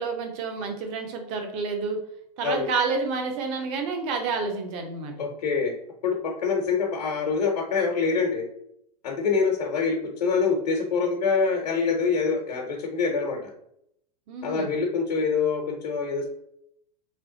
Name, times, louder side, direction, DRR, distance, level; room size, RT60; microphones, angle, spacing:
voice 1, 0.0-2.0 2.4-5.1 14.3-14.8, right 4 dB, 30° right, 4 dB, 0.8 m, -29 dB
voice 2, 5.2-5.7 6.0-8.4 9.0-13.5 14.4-16.3, left 5 dB, 85° left, 1 dB, 1.1 m, -25 dB
3.4 x 3.3 x 3.9 m, 0.73 s
supercardioid pair, 165°, 20 cm